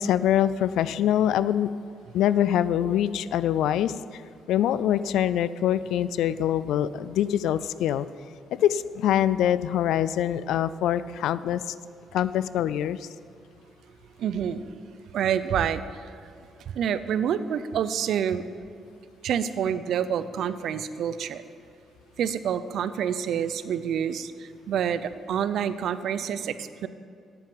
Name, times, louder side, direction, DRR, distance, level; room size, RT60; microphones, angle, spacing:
voice 1, 0.0-1.7 2.1-4.2 4.5-8.1 8.5-11.7 12.1-13.1, left 11 dB, 85° left, 16 dB, 0.3 m, -24 dB
voice 2, 14.2-14.7 15.1-15.8 16.7-18.4 19.2-21.4 22.2-26.9, right 8 dB, 70° right, 13 dB, 0.5 m, -27 dB
8.7 x 7.6 x 8.9 m, 2.3 s
cardioid pair, 90°, 0 cm